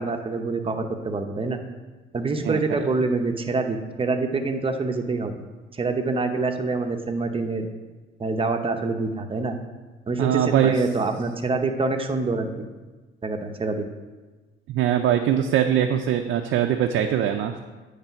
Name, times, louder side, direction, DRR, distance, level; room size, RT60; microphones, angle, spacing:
voice 1, 0.0-1.6 2.1-5.3 5.7-7.7 8.2-9.6 10.1-12.5 13.2-13.8, right 3 dB, 25° right, 5 dB, 0.7 m, -26 dB
voice 2, 2.4-2.8 10.2-10.8 14.7-17.6, right 10 dB, 80° right, 4 dB, 0.5 m, -22 dB
8.9 x 3.3 x 5.6 m, 1.2 s
cardioid pair, 90°, 20 cm